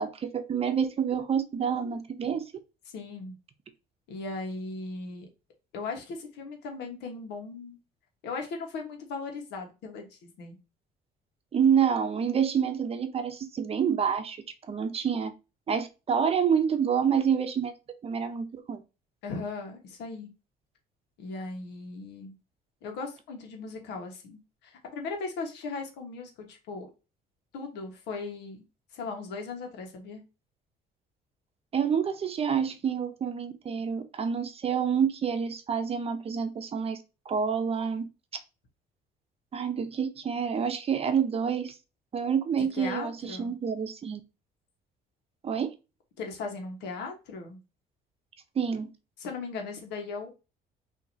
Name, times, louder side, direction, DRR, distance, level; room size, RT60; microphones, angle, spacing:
voice 1, 0.0-2.5 11.5-14.4 14.7-15.3 15.7-17.7 18.0-18.8 31.7-37.0 37.3-38.1 39.5-41.7 42.1-44.2 45.4-45.7 48.6-48.9, right 7 dB, 35° right, 0.7 m, -28 dB
voice 2, 2.9-3.3 4.1-5.3 5.7-7.8 8.2-10.6 19.2-20.3 21.2-22.4 22.8-26.9 27.5-28.6 28.9-30.2 42.6-43.5 46.2-47.6 49.2-50.3, left 3 dB, 85° left, 1.4 m, -38 dB
5.7 x 2.9 x 2.7 m
cardioid pair, 110°, 17 cm